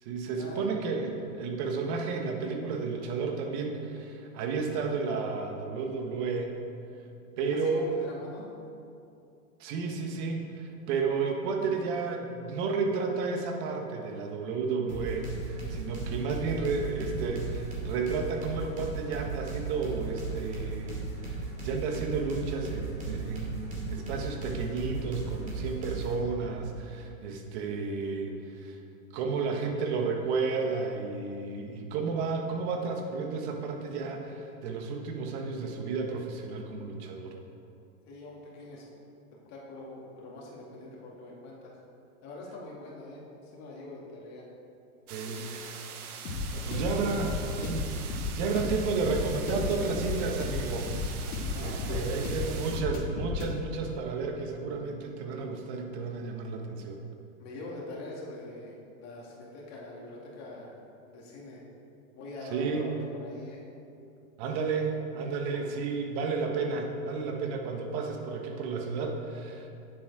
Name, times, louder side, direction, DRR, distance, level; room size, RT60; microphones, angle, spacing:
voice 1, 0.0-6.5 7.4-7.9 9.6-28.8 29.1-37.3 45.1-45.7 46.7-47.3 47.6-50.9 51.6-57.0 62.5-62.9 64.4-69.7, right 4 dB, 45° right, 3 dB, 1.5 m, -32 dB
voice 2, 7.6-8.5 38.1-38.9 39.5-41.7 42.2-44.5 45.2-45.6 46.5-47.5 51.5-52.4 57.4-60.7 61.1-61.6 62.1-63.6, left 2 dB, 35° left, -3 dB, 2.2 m, -43 dB
sound 1, 14.9-26.2, right 4 dB, 15° right, 2.6 m, -37 dB
sound 2, 45.1-52.8, right 7 dB, 75° right, 1.2 m, -43 dB
sound 3, 46.2-53.5, left 3 dB, 85° left, 2.1 m, -33 dB
9.4 x 7.6 x 4.8 m, 2.6 s
hypercardioid pair, 135°, 44 cm